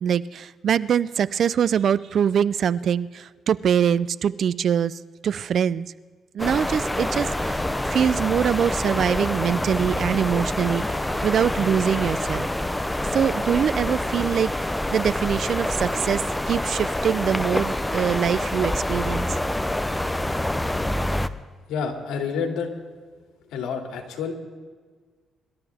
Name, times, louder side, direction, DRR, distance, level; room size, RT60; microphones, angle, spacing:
voice 1, 0.0-5.9 6.3-7.6 7.9-12.5 13.1-14.5 14.9-19.3, right 8 dB, 60° right, 19 dB, 0.5 m, -23 dB
sound 1, 6.4-21.3, left 1 dB, 10° left, 0.7 m, -26 dB
voice 2, 21.7-22.7 23.5-24.3, left 6 dB, 90° left, 3 dB, 2.6 m, -28 dB
25.0 x 13.0 x 3.5 m, 1.5 s
cardioid pair, 90°, 0 cm